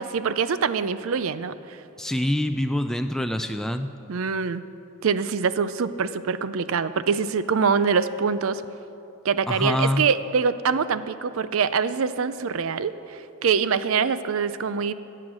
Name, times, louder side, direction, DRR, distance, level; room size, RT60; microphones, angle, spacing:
voice 1, 0.0-1.8 4.1-4.6 5.0-8.6 9.2-14.9, right 6 dB, 65° right, 14 dB, 0.5 m, -24 dB
voice 2, 2.0-3.9 9.5-10.0, left 1 dB, ahead, 6 dB, 0.3 m, -25 dB
16.5 x 7.8 x 6.2 m, 2.9 s
head